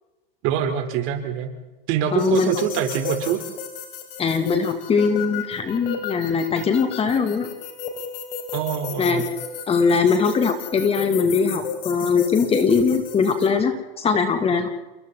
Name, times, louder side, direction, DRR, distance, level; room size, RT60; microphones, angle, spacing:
voice 1, 0.4-1.5 1.9-3.4 8.5-9.3, right 9 dB, 45° right, 6 dB, 4.0 m, -24 dB
voice 2, 2.1-2.5 4.2-7.5 9.0-9.2 9.7-14.7, left 5 dB, 20° left, 7 dB, 2.7 m, -21 dB
sound 1, 2.2-13.5, left 6 dB, 70° left, 6.0 m, -34 dB
29.0 x 23.5 x 4.1 m, 1.1 s
hypercardioid pair, 135°, 29 cm